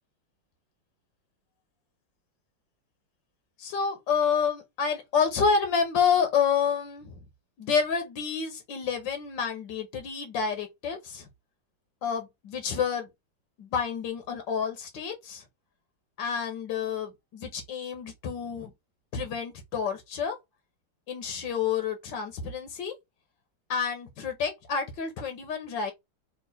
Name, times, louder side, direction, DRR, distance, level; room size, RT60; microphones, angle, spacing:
voice 1, 3.6-7.2 7.6-11.3 12.0-13.1 13.6-15.4 16.2-18.7 19.1-20.4 21.1-23.0 23.7-25.9, left 6 dB, 75° left, 1.6 m, -29 dB
3.8 x 2.6 x 4.1 m
omnidirectional pair, 2.0 m